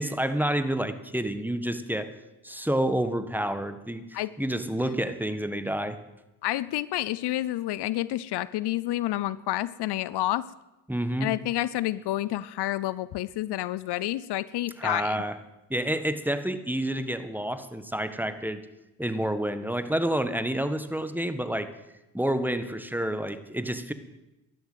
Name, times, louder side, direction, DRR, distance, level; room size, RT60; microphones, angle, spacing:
voice 1, 0.0-2.1 2.4-6.0 10.9-11.3 14.8-15.4 15.7-18.6 19.0-21.7 22.1-23.9, right 1 dB, 5° right, 11 dB, 1.5 m, -29 dB
voice 2, 6.4-10.5 11.2-15.2, left 15 dB, 70° left, 18 dB, 0.6 m, -29 dB
12.5 x 11.0 x 8.1 m, 0.96 s
supercardioid pair, 45°, 41 cm